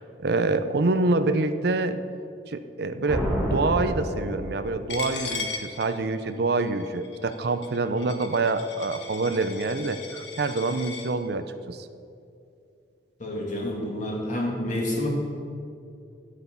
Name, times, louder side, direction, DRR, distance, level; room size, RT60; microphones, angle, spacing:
voice 1, 0.0-2.0 2.5-11.9, right 3 dB, 65° right, 10 dB, 0.6 m, -26 dB
sound 1, 3.1-5.0, equal, 5° right, 2.6 m, -29 dB
Coin (dropping), 4.9-11.1, left 4 dB, 90° left, 1.6 m, -37 dB
voice 2, 13.2-15.1, left 1 dB, 45° left, -2 dB, 2.7 m, -29 dB
13.5 x 8.2 x 5.5 m, 2.5 s
head